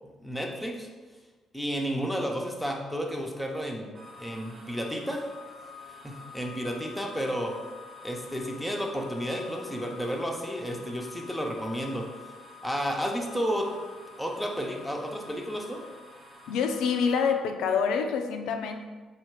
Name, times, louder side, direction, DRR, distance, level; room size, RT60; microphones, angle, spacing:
voice 1, 0.2-0.9 1.5-3.9 4.2-5.2 6.0-7.5 8.0-12.1 12.6-13.7 14.2-15.8, equal, ahead, 0 dB, 0.7 m, -32 dB
sound 1, 3.9-17.3, left 4 dB, 40° right, 0.7 m, -48 dB
voice 2, 16.5-18.8, left 6 dB, 90° left, 5 dB, 0.3 m, -26 dB
4.2 x 2.4 x 4.6 m, 1.3 s
cardioid pair, 90°, 0 cm